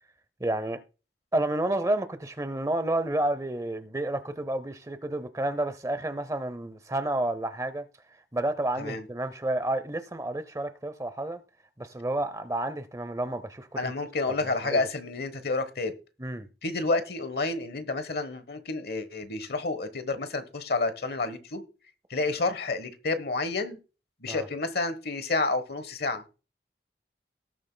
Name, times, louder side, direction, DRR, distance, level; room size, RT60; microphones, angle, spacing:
voice 1, 0.4-0.8 1.3-7.9 8.3-11.4 11.8-13.9 14.6-14.8 16.2-16.5 24.3-24.5, right 1 dB, 20° right, 0.6 m, -30 dB
voice 2, 13.8-15.9 16.6-21.6 22.1-23.8 24.2-26.2, left 3 dB, 60° left, 1.1 m, -29 dB
18.5 x 7.1 x 2.2 m
head